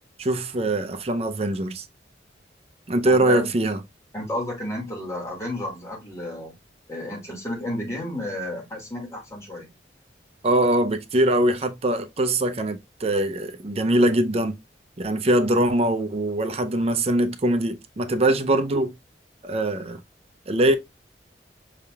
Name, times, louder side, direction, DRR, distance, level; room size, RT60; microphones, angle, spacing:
voice 1, 0.2-1.8 2.9-3.8 10.4-14.6 15.0-18.9 19.4-20.0 20.5-20.8, right 1 dB, 35° right, 0.5 m, -22 dB
voice 2, 3.1-3.5 4.1-6.5 6.9-9.7, left 1 dB, 15° left, 2.0 m, -32 dB
5.5 x 3.5 x 2.3 m
head